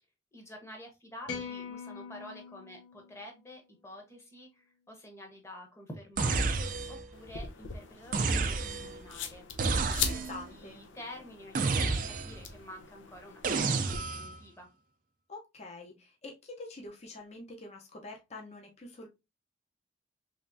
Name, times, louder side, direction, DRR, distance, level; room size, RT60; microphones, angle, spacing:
voice 1, 0.3-6.6 6.9-9.5 10.1-14.7, left 1 dB, 15° left, 0.9 m, -49 dB
sound 1, 1.3-3.6, left 6 dB, 65° left, 0.9 m, -43 dB
sound 2, 6.2-7.1 8.1-9.0 9.6-10.4 11.5-12.5 13.4-14.3, right 4 dB, 45° right, 0.4 m, -30 dB
sound 3, 7.1-14.0, left 7 dB, 90° left, 0.6 m, -41 dB
voice 2, 10.0-10.8 15.3-19.1, left 2 dB, 35° left, 0.7 m, -46 dB
3.3 x 3.1 x 2.6 m
head